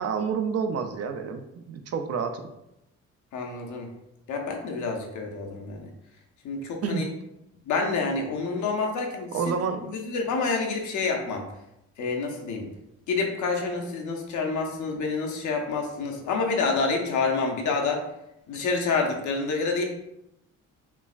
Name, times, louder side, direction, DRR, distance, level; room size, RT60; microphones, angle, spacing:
voice 1, 0.0-2.5 6.8-7.0 9.3-9.9, right 6 dB, 55° right, 7 dB, 0.5 m, -29 dB
voice 2, 3.3-3.9 4.3-5.9 6.4-7.0 7.7-9.5 9.9-11.5 12.0-12.7 13.1-18.0 18.5-19.8, left 4 dB, 75° left, 2 dB, 0.8 m, -28 dB
5.6 x 2.1 x 2.4 m, 0.84 s
cardioid pair, 90°, 30 cm